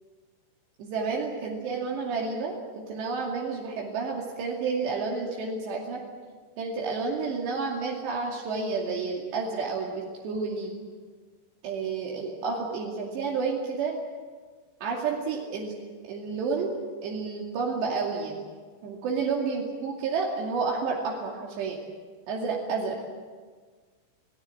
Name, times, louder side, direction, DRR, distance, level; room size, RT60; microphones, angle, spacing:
voice 1, 0.8-2.6 2.9-6.0 6.6-10.7 11.6-14.0 14.8-15.7 16.1-16.7 17.0-18.4 18.8-21.8 22.3-23.1, right 4 dB, 80° right, -2 dB, 4.7 m, -30 dB
30.0 x 18.0 x 7.8 m, 1.5 s
omnidirectional pair, 4.9 m